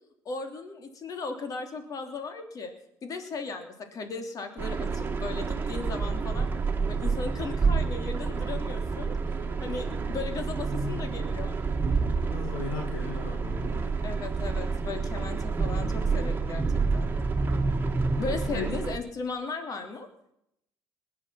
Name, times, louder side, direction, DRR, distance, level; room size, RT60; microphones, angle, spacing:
voice 1, 0.2-2.7 3.0-6.5 6.9-11.5 14.0-16.6 16.9-17.1 18.2-20.1, left 4 dB, 45° left, 6 dB, 3.1 m, -36 dB
sound 1, 4.6-19.0, right 4 dB, 25° right, 2.0 m, -28 dB
voice 2, 12.2-14.0 18.4-18.8, left 6 dB, 70° left, 2 dB, 2.4 m, -37 dB
21.0 x 9.9 x 5.8 m, 0.77 s
hypercardioid pair, 70°, 8 cm